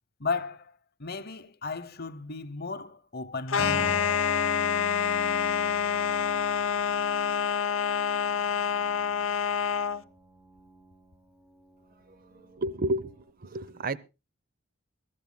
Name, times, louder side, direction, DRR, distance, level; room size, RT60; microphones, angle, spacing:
voice 1, 0.2-4.0, left 4 dB, 50° left, 0.8 m, -35 dB
sound 1, 3.5-10.0, left 7 dB, 75° left, 0.7 m, -27 dB
Piano, 3.6-13.2, right 1 dB, 10° right, 1.2 m, -44 dB
voice 2, 12.5-14.0, right 1 dB, 45° right, 0.7 m, -31 dB
22.0 x 14.0 x 2.2 m
head